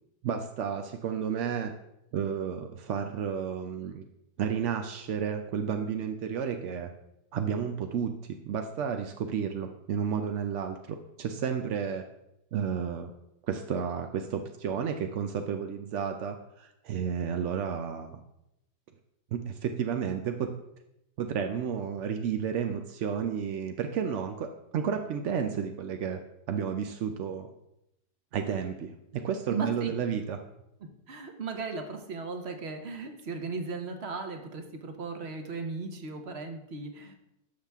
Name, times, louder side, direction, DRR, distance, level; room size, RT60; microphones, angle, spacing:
voice 1, 0.2-1.7 2.1-4.1 4.4-6.9 7.3-8.1 8.4-12.0 12.5-13.1 13.5-18.2 19.3-20.5 21.2-26.2 26.5-27.5 28.3-30.4, right 7 dB, 70° right, 6 dB, 0.7 m, -32 dB
voice 2, 29.5-29.9 30.8-37.2, right 4 dB, 45° right, 6 dB, 1.1 m, -36 dB
13.0 x 5.7 x 3.5 m, 0.83 s
omnidirectional pair, 1.9 m